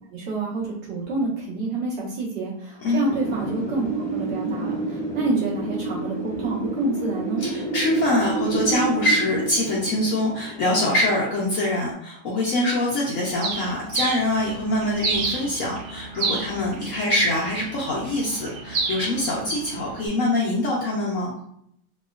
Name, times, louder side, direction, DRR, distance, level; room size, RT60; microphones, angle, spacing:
voice 1, 0.1-7.4, right 3 dB, 35° right, -7 dB, 1.1 m, -28 dB
Wind, 3.1-11.8, right 2 dB, 5° right, 0.7 m, -29 dB
voice 2, 7.4-21.3, left 1 dB, 75° left, -5 dB, 0.7 m, -24 dB
Bird, 13.4-20.1, right 3 dB, 70° right, 1.1 m, -31 dB
3.1 x 2.8 x 2.3 m, 0.70 s
omnidirectional pair, 2.2 m